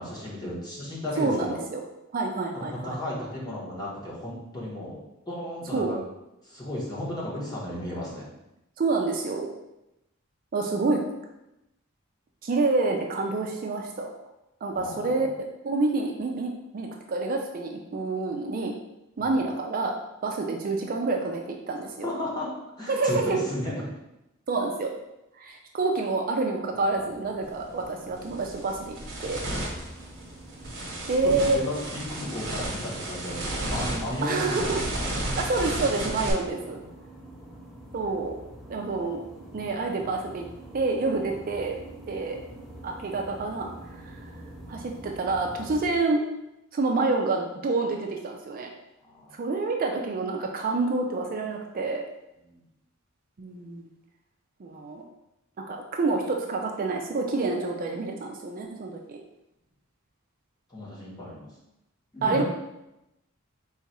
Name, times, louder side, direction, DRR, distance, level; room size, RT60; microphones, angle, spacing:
voice 1, 0.0-1.6 2.5-5.0 5.3-6.0 6.4-8.3 14.7-15.2 19.2-19.4 22.0-22.5 22.8-23.9 31.2-35.1 35.6-35.7 36.6-37.0 49.0-49.3 52.5-52.7 60.7-61.5 62.1-62.4, left 1 dB, 20° left, -6 dB, 1.2 m, -34 dB
voice 2, 1.2-1.8 2.1-3.0 5.7-5.9 8.8-9.5 10.5-11.1 12.4-14.1 14.6-15.3 15.6-18.7 19.2-20.0 20.2-22.1 22.9-23.4 24.5-24.9 25.4-29.8 31.1-31.6 34.2-34.8 35.2-36.8 37.9-38.3 38.7-39.2 39.5-40.5 40.7-41.8 42.1-42.4 42.8-44.4 44.7-46.2 46.7-48.7 49.3-52.0 53.4-53.9 54.6-55.0 55.7-59.2 62.2-62.4, right 3 dB, 45° right, 1 dB, 0.4 m, -28 dB
sound 1, 26.7-45.9, right 1 dB, ahead, 0.6 m, -46 dB
sound 2, 27.5-27.6 28.1-36.3, right 1 dB, 60° right, 1.0 m, -33 dB
3.9 x 2.4 x 4.2 m, 0.90 s
head